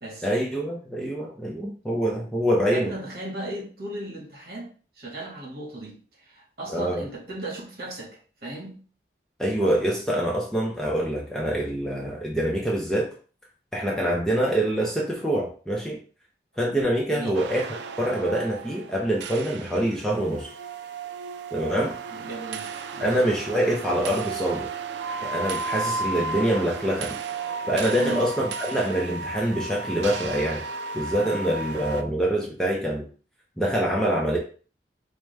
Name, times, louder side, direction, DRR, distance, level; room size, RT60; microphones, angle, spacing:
voice 1, 0.2-2.9 6.7-7.0 9.4-13.1 13.7-16.0 16.6-17.7 18.0-20.5 21.5-22.0 23.0-24.7 25.2-27.2 27.7-30.6 30.9-33.1 33.6-34.4, right 1 dB, 5° left, -2 dB, 0.5 m, -25 dB
voice 2, 2.7-8.7 17.1-17.4 22.1-23.2 27.9-28.3, right 1 dB, 60° right, -2 dB, 1.5 m, -36 dB
sound 1, 17.3-32.0, right 4 dB, 85° right, 0.4 m, -34 dB
4.8 x 2.1 x 3.2 m, 0.40 s
head